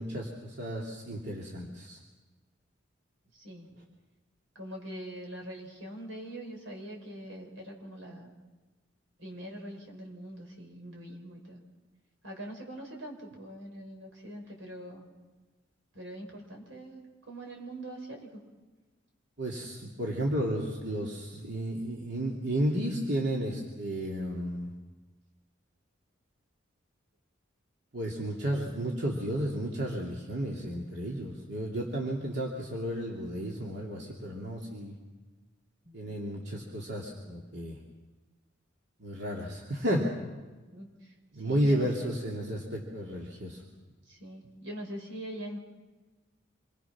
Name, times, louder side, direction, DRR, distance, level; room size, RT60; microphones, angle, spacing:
voice 1, 0.0-2.0 19.4-24.7 27.9-35.0 35.9-37.8 39.0-40.1 41.3-43.6, right 1 dB, 60° right, -2 dB, 2.8 m, -32 dB
voice 2, 3.3-3.8 4.5-8.3 9.2-11.6 12.2-15.1 15.9-18.4 35.8-36.2 40.7-41.9 44.1-45.6, right 1 dB, 85° right, 2 dB, 5.1 m, -43 dB
27.0 x 22.0 x 6.0 m, 1.2 s
head